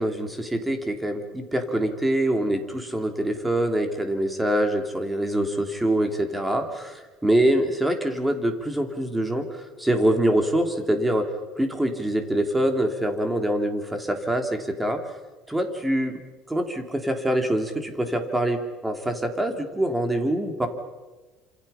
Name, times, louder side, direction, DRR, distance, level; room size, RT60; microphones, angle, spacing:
voice 1, 0.0-9.5 9.8-11.3 11.6-15.0 15.5-16.2 16.5-20.7, right 1 dB, 5° right, 5 dB, 3.2 m, -24 dB
28.5 x 27.5 x 5.8 m, 1.2 s
cardioid pair, 140°, 0 cm